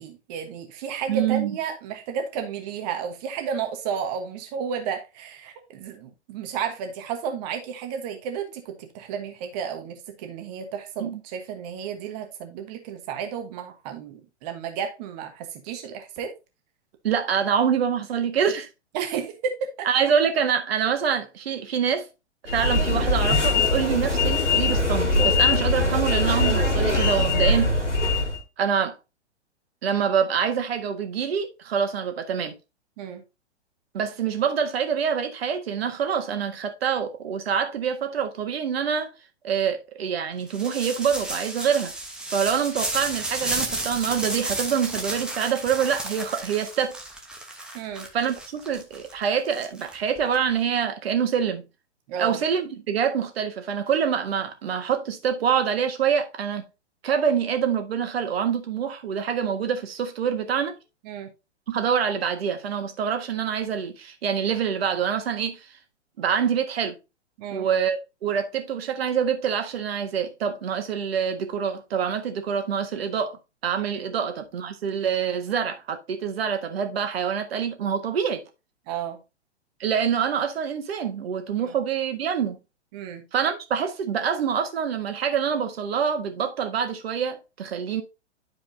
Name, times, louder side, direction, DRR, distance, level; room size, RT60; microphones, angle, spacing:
voice 1, 0.0-16.3 18.9-19.9 33.0-33.2 47.7-48.1 52.1-52.4 61.0-61.3 67.4-67.7 73.8-74.0 78.9-79.2 81.6-81.7 82.9-83.2, right 7 dB, 35° right, 1.3 m, -32 dB
voice 2, 1.1-1.6 11.0-11.2 17.0-18.7 19.8-22.1 22.4-27.8 28.6-28.9 29.8-32.5 33.9-39.1 39.4-41.9 42.3-47.0 48.1-51.6 52.2-56.6 57.0-60.7 61.7-65.7 66.2-67.0 67.5-78.4 79.8-82.6 83.3-88.0, right 7 dB, 60° right, 1.6 m, -26 dB
sound 1, 22.5-28.4, left 2 dB, 85° left, 2.2 m, -22 dB
sound 2, 40.5-50.4, right 2 dB, ahead, 1.1 m, -32 dB
11.5 x 4.8 x 2.7 m
figure-of-eight pair, 115°, 35 cm